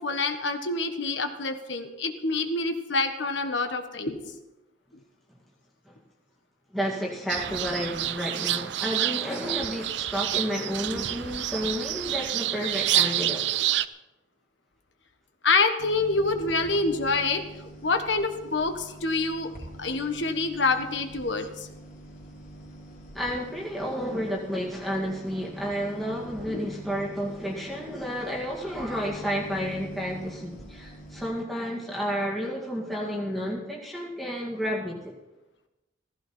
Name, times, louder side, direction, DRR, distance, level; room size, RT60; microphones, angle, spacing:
voice 1, 0.0-4.4 15.4-17.4 17.8-19.5 19.8-21.7 26.5-26.7, left 3 dB, 75° left, 7 dB, 1.4 m, -26 dB
voice 2, 6.7-13.6 23.1-35.1, equal, ahead, -4 dB, 2.0 m, -31 dB
sound 1, 7.3-13.9, right 13 dB, 70° right, 0.5 m, -28 dB
sound 2, 15.8-31.3, right 1 dB, 45° left, 3.4 m, -45 dB
15.5 x 15.5 x 4.4 m, 0.98 s
head